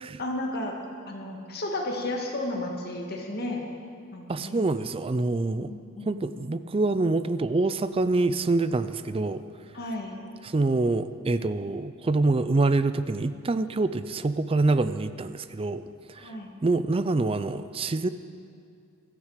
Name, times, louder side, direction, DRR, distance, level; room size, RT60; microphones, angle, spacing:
voice 1, 0.2-0.8 1.1-3.7 4.1-4.6 5.6-6.6 9.7-10.1 16.2-16.5, left 1 dB, 45° left, 1 dB, 2.0 m, -33 dB
voice 2, 4.3-5.7 6.1-9.4 10.4-15.8 16.1-16.4 16.6-18.1, right 3 dB, 25° right, 13 dB, 0.4 m, -26 dB
16.5 x 13.5 x 5.0 m, 2.4 s
head